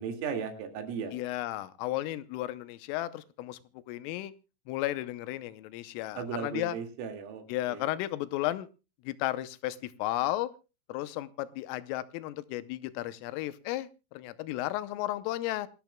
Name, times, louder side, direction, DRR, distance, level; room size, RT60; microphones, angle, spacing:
voice 1, 0.0-1.1 6.1-7.4 7.7-7.9, right 6 dB, 80° right, 6 dB, 4.8 m, -36 dB
voice 2, 1.1-3.6 3.9-4.3 4.7-6.8 7.5-8.7 9.0-10.5 10.9-15.7, left 15 dB, 85° left, 15 dB, 3.3 m, -34 dB
26.5 x 12.0 x 2.2 m, 0.30 s
omnidirectional pair, 5.8 m